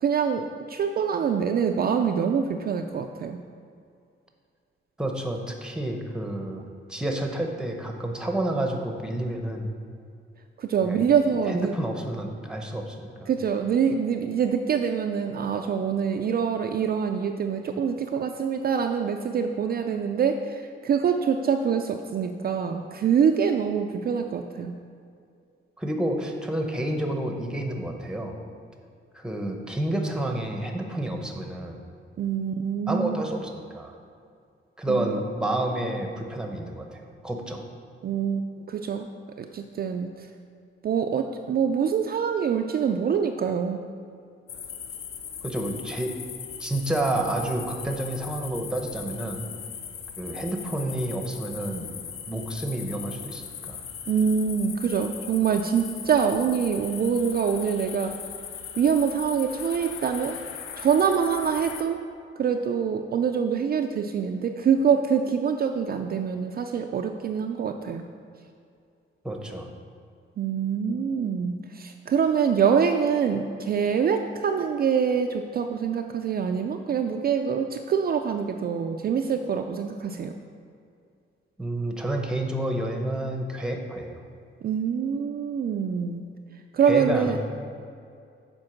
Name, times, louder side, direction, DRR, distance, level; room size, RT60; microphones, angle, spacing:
voice 1, 0.0-3.4 10.6-11.7 13.3-24.7 32.2-33.2 34.9-35.2 38.0-38.4 38.7-39.1 39.4-40.1 40.8-43.8 54.1-58.2 58.8-60.4 60.8-62.0 62.4-68.0 70.4-80.3 84.6-86.2 86.7-87.4, right 7 dB, 45° right, 4 dB, 0.4 m, -25 dB
voice 2, 5.0-6.6 6.9-9.7 10.8-11.0 11.5-13.3 25.8-28.4 29.1-31.8 32.9-33.9 34.8-37.6 45.4-46.1 46.6-49.4 50.2-51.9 52.3-53.4 53.7-53.8 69.2-69.7 81.6-84.2 86.9-87.4, right 1 dB, 5° right, 2 dB, 0.8 m, -29 dB
sound 1, 44.5-61.8, left 8 dB, 85° left, 0.6 m, -39 dB
7.8 x 4.6 x 5.8 m, 2.4 s
wide cardioid pair, 160°, 21 cm